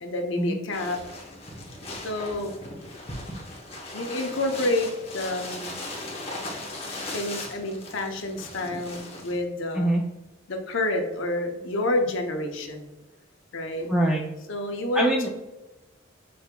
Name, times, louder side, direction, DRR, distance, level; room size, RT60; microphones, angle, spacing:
voice 1, 0.0-1.0 2.0-2.5 3.9-5.8 7.1-10.0 10.5-12.9 13.5-13.9 14.5-15.3, left 1 dB, 70° left, 3 dB, 0.7 m, -29 dB
sound 1, 0.7-9.4, left 2 dB, 30° left, 0.8 m, -38 dB
voice 2, 13.9-14.2 15.0-15.3, right 1 dB, 5° right, -2 dB, 0.3 m, -23 dB
6.3 x 3.4 x 2.2 m, 1.0 s
head